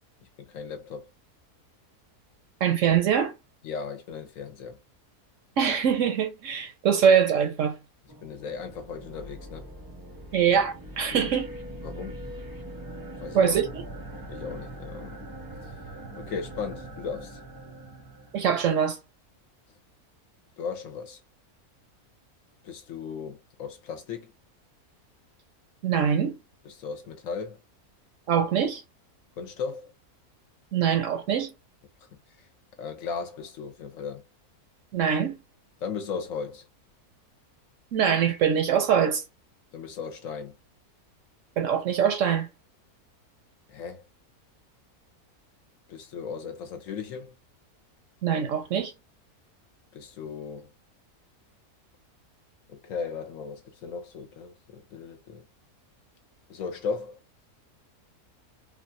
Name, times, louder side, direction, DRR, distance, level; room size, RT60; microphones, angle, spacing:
voice 1, 0.5-1.1 3.6-4.8 8.2-9.7 11.1-11.4 11.8-12.2 13.2-13.6 14.3-15.2 15.6-15.7 16.2-17.4 20.6-21.2 22.6-24.3 26.6-27.6 29.4-29.9 32.4-32.5 32.8-34.2 35.8-36.7 39.7-40.5 43.7-44.0 45.9-47.3 49.9-50.7 52.7-55.4 56.5-57.2, left 5 dB, 65° left, 1.1 m, -36 dB
voice 2, 2.6-3.3 5.6-7.7 10.3-11.5 13.3-13.7 18.3-19.0 25.8-26.4 28.3-28.8 30.7-31.5 34.9-35.4 37.9-39.2 41.6-42.5 48.2-48.9, right 8 dB, 65° right, 0.9 m, -23 dB
sound 1, 8.1-18.6, right 1 dB, 35° right, 0.3 m, -42 dB
3.3 x 2.3 x 2.5 m
omnidirectional pair, 1.6 m